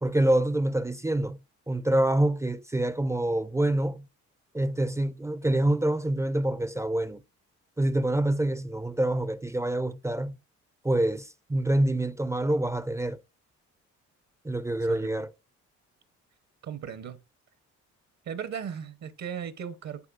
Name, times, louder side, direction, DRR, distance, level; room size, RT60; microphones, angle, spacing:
voice 1, 0.0-1.4 1.7-4.1 4.5-7.2 7.8-10.4 10.8-13.2 14.4-15.3, right 1 dB, 10° right, 0.4 m, -26 dB
voice 2, 14.9-15.2 16.6-17.2 18.2-20.1, right 8 dB, 65° right, 0.9 m, -37 dB
11.0 x 4.2 x 2.4 m
cardioid pair, 90°, 30 cm